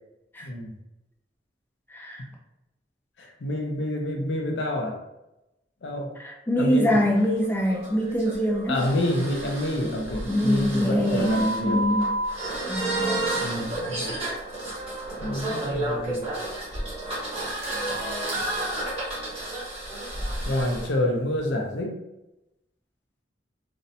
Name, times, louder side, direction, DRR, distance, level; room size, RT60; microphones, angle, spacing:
voice 1, 0.4-0.8 3.2-5.0 5.8-6.1 6.6-7.0 8.7-11.8 13.4-14.1 15.2-16.3 20.5-22.0, left 1 dB, 75° left, 2 dB, 0.5 m, -27 dB
voice 2, 1.9-2.2 6.2-8.8 10.3-12.1 12.6-13.2, equal, 10° left, -1 dB, 0.3 m, -24 dB
sound 1, 7.2-20.9, right 1 dB, 35° right, 1.0 m, -31 dB
2.5 x 2.1 x 2.6 m, 0.92 s
head